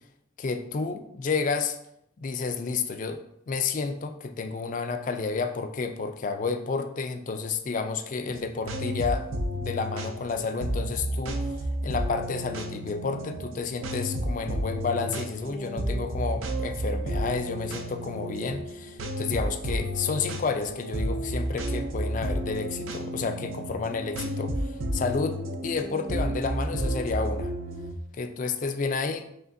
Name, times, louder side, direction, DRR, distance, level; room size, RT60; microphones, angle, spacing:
voice 1, 0.4-1.8 2.2-3.2 3.5-9.3 9.5-11.6 11.8-27.5 28.2-29.3, left 4 dB, 40° left, 8 dB, 0.3 m, -31 dB
sound 1, 8.3-27.9, equal, 85° right, 0.5 m, -32 dB
5.0 x 3.1 x 2.6 m, 0.76 s
head